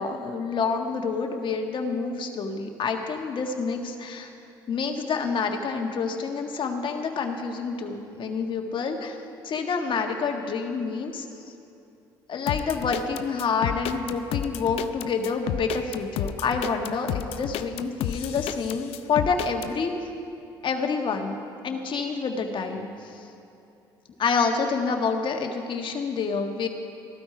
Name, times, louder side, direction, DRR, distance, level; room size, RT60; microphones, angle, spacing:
voice 1, 0.0-4.3 4.7-9.2 9.4-11.3 12.3-19.9 20.6-21.4 21.6-23.2 24.2-26.7, left 5 dB, 50° left, 3 dB, 1.7 m, -28 dB
sound 1, 12.5-19.7, left 11 dB, 70° left, 0.6 m, -31 dB
14.5 x 12.5 x 5.0 m, 2.8 s
hypercardioid pair, 60°, 11 cm